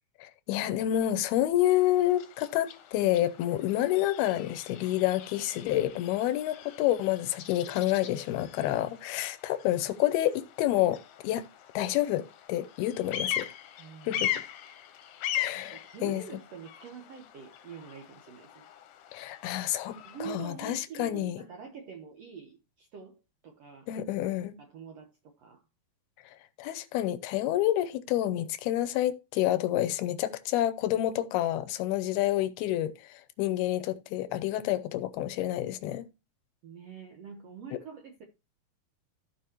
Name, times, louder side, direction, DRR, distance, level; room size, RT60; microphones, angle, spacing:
voice 1, 0.2-11.4 11.7-13.5 14.1-14.3 15.3-16.2 19.1-21.4 23.9-24.5 26.6-36.1, left 13 dB, 90° left, 2.7 m, -28 dB
Bird vocalization bird call bird song, 1.6-20.3, left 11 dB, 70° left, 2.1 m, -40 dB
voice 2, 13.8-14.3 15.5-18.7 20.0-23.9 24.6-25.6 36.6-38.2, right 6 dB, 65° right, 1.7 m, -45 dB
15.0 x 5.3 x 3.0 m
omnidirectional pair, 4.3 m